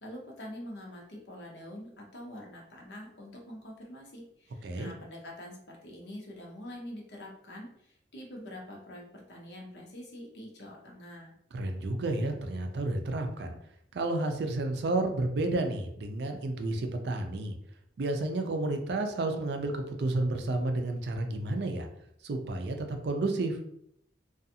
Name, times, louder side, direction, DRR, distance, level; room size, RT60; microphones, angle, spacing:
voice 1, 0.0-11.3, left 1 dB, 65° left, -2 dB, 0.7 m, -45 dB
voice 2, 11.5-13.6 13.9-17.5 18.0-21.9 22.2-23.6, right 2 dB, 65° right, 5 dB, 0.4 m, -31 dB
2.5 x 2.3 x 2.7 m, 0.73 s
head